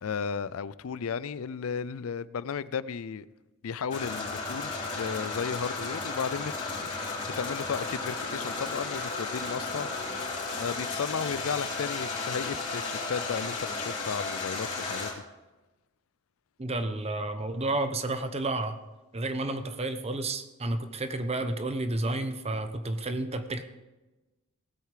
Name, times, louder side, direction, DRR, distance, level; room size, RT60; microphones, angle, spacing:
voice 1, 0.0-3.3 3.6-7.1 7.4-10.2 10.6-15.1, left 6 dB, 75° left, 0.4 m, -34 dB
sound 1, 3.9-15.1, left 3 dB, 35° left, 3.3 m, -34 dB
voice 2, 16.6-18.8 19.1-23.6, right 2 dB, 30° right, 0.9 m, -31 dB
18.5 x 8.1 x 4.9 m
head